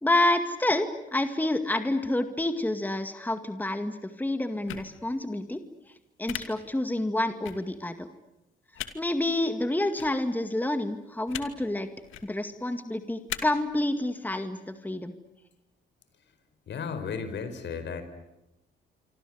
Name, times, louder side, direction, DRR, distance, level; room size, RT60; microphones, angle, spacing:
voice 1, 0.0-5.6 6.2-8.1 8.9-11.9 12.2-15.1, left 1 dB, 10° left, 9 dB, 2.1 m, -28 dB
sound 1, 4.7-4.8 6.3-6.4 7.4-7.5 8.7-8.9 10.0-10.1 11.3-11.5 12.0-12.2 13.3-13.4, left 13 dB, 85° left, 2.6 m, -35 dB
voice 2, 16.7-18.0, left 5 dB, 65° left, 10 dB, 5.0 m, -34 dB
27.0 x 25.5 x 8.0 m, 0.94 s
cardioid pair, 90°, 20 cm